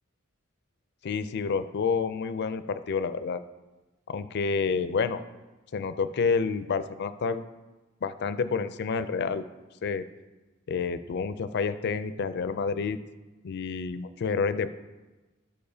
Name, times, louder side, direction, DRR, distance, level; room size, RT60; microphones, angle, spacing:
voice 1, 1.0-3.4 4.1-5.2 5.7-7.5 8.0-9.4 9.8-10.0 10.7-13.0 13.4-14.7, left 5 dB, 55° left, 12 dB, 0.4 m, -29 dB
12.0 x 6.7 x 2.7 m, 1.2 s
head